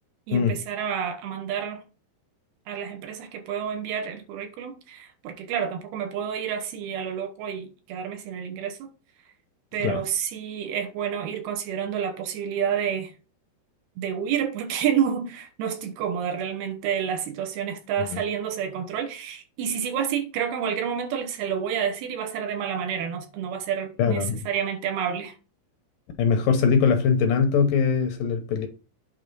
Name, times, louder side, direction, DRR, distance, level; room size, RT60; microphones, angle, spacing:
voice 1, 0.3-1.8 2.7-8.9 9.7-13.1 14.0-25.4, right 8 dB, 75° right, 2.7 m, -29 dB
voice 2, 24.0-24.4 26.2-28.7, left 6 dB, 75° left, 2.1 m, -22 dB
8.9 x 3.6 x 5.2 m
omnidirectional pair, 4.7 m